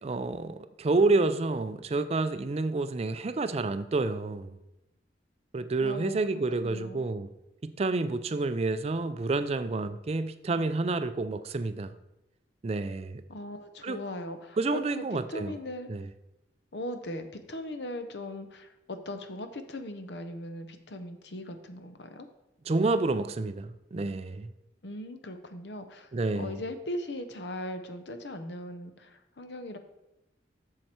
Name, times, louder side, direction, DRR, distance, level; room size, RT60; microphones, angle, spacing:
voice 1, 0.0-4.5 5.5-7.3 7.6-11.9 12.6-13.2 13.8-14.0 14.6-15.5 15.9-16.1 22.7-24.5 26.1-26.6, right 3 dB, 35° right, 0.4 m, -29 dB
voice 2, 5.8-6.2 6.6-7.0 13.3-15.9 16.7-22.3 24.8-29.8, left 1 dB, 65° left, 0.8 m, -39 dB
7.5 x 6.6 x 4.4 m
head